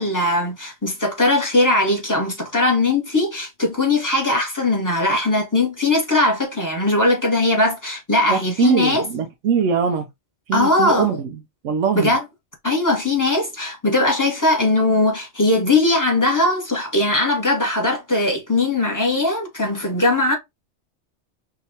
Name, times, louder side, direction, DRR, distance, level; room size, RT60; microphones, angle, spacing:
voice 1, 0.0-9.0 10.5-11.2 11.9-12.2 12.6-20.3, left 2 dB, 15° left, 1.5 m, -19 dB
voice 2, 8.3-10.1 10.5-12.1, right 7 dB, 85° right, 1.0 m, -22 dB
5.7 x 2.7 x 2.8 m
omnidirectional pair, 1.2 m